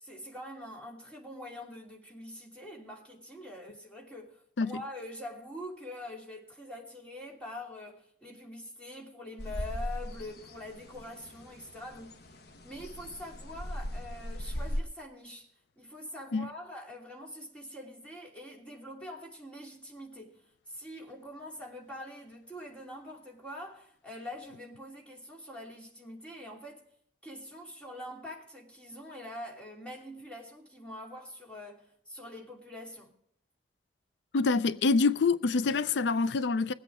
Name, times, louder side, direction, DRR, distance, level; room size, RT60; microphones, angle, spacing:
voice 1, 0.0-12.2 12.6-15.5 15.8-20.4 20.7-26.8 27.2-33.1, left 1 dB, 5° left, 2.9 m, -44 dB
sound 1, 9.4-14.8, equal, 70° left, 1.0 m, -38 dB
voice 2, 34.3-36.7, left 4 dB, 85° left, 0.4 m, -26 dB
21.5 x 8.4 x 3.5 m
head